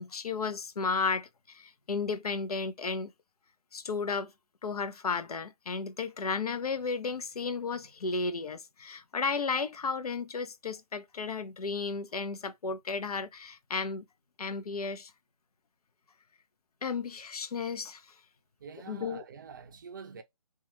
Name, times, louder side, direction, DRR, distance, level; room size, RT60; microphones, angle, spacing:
voice 1, 0.0-3.1 3.7-4.3 4.6-14.1 14.4-15.1 16.8-18.1 18.9-19.2, left 4 dB, 75° left, 0.6 m, -33 dB
voice 2, 18.6-20.2, right 6 dB, 35° right, 0.4 m, -46 dB
2.9 x 2.3 x 2.6 m
figure-of-eight pair, 150°, 19 cm